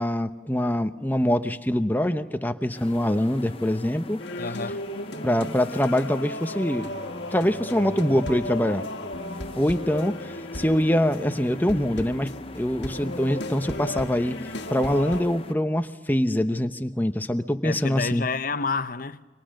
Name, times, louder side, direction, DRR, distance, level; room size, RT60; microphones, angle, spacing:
voice 1, 0.0-4.2 5.2-6.9 7.3-8.8 9.6-12.3 12.5-14.4 14.7-18.3, left 1 dB, 10° left, 0.9 m, -24 dB
sound 1, 2.7-15.6, left 2 dB, 30° left, 1.0 m, -44 dB
sound 2, 4.2-15.2, left 1 dB, 65° left, 1.7 m, -35 dB
voice 2, 4.4-4.8 17.6-19.3, left 4 dB, 50° left, 0.8 m, -29 dB
30.0 x 25.0 x 6.5 m
head